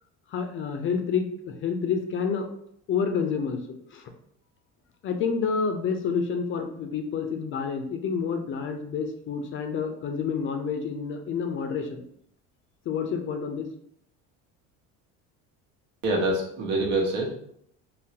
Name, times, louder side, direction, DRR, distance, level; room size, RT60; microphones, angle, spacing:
voice 1, 0.3-2.5 2.9-4.1 5.0-12.0 12.9-13.7, left 6 dB, 40° left, 5 dB, 0.4 m, -29 dB
voice 2, 16.0-17.3, right 2 dB, 75° right, -1 dB, 1.1 m, -25 dB
3.7 x 2.1 x 2.8 m, 0.69 s
cardioid pair, 120°, 32 cm